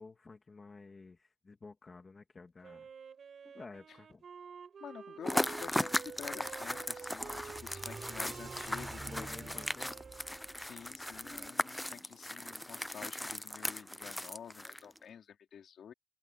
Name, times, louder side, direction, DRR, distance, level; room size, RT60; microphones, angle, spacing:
voice 1, 0.0-2.9 3.4-4.2 8.7-9.9, left 3 dB, 30° left, 2.7 m, -52 dB
Wind instrument woodwind instrument, 2.6-10.7, right 6 dB, 55° right, 7.4 m, -50 dB
voice 2, 4.8-9.5 10.6-15.9, left 8 dB, 75° left, 3.5 m, -49 dB
sound 1, 5.2-15.0, left 1 dB, 5° left, 0.4 m, -38 dB
Car / Accelerating revving vroom, 5.3-11.5, right 3 dB, 25° right, 7.3 m, -51 dB
wide cardioid pair, 150°, 0 cm